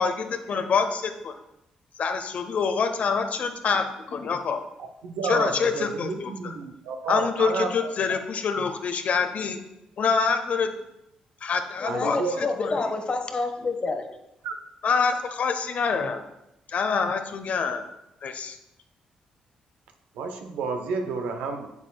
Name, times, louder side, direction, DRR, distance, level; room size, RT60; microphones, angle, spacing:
voice 1, 0.0-1.3 2.0-4.6 5.2-6.5 7.1-9.6 10.0-10.7 11.4-12.8 14.8-16.2 16.7-17.8 18.2-18.6, left 5 dB, 60° left, 7 dB, 0.8 m, -26 dB
voice 2, 5.0-7.7 11.8-12.4 14.4-14.5 16.0-16.1 20.2-21.7, right 4 dB, 80° right, 6 dB, 0.8 m, -30 dB
voice 3, 11.8-14.1, left 3 dB, 40° left, 5 dB, 1.2 m, -28 dB
8.1 x 7.4 x 2.3 m, 0.86 s
supercardioid pair, 55°, 3 cm